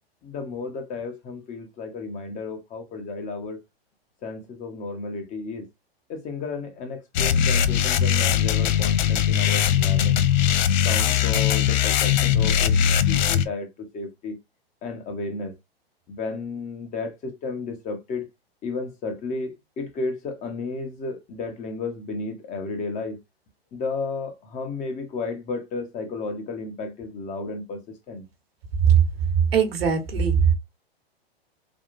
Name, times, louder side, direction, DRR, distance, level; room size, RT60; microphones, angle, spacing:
voice 1, 0.2-3.6 4.2-5.7 6.1-10.2 10.8-14.4 14.8-15.5 16.1-18.3 18.6-23.2 23.7-27.8 28.1-28.2, left 3 dB, 25° left, 0.8 m, -33 dB
sound 1, 7.1-13.4, left 9 dB, 50° left, 0.4 m, -20 dB
voice 2, 29.5-30.4, right 7 dB, 70° right, 1.1 m, -20 dB
3.5 x 2.3 x 2.4 m
figure-of-eight pair, 110°, 31 cm